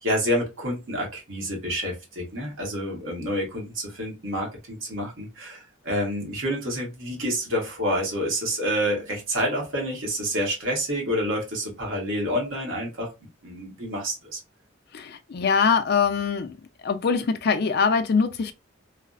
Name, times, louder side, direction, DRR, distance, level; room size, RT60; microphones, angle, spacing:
voice 1, 0.0-13.1 13.4-14.4, equal, 90° right, 1.3 m, -28 dB
voice 2, 14.9-16.6 16.8-18.5, left 5 dB, 55° left, 0.4 m, -23 dB
3.1 x 2.0 x 2.4 m
head